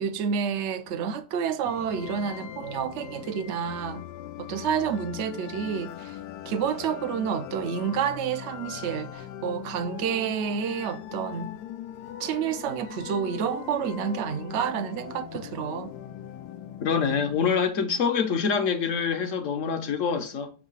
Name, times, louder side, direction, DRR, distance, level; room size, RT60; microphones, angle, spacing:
voice 1, 0.0-4.1 4.4-6.2 6.5-11.5 12.2-15.9, right 7 dB, 60° right, 0.8 m, -29 dB
sound 1, 1.6-17.6, left 10 dB, 85° left, 1.1 m, -40 dB
voice 2, 16.8-20.5, left 6 dB, 60° left, 1.0 m, -25 dB
7.3 x 2.7 x 5.5 m
omnidirectional pair, 1.6 m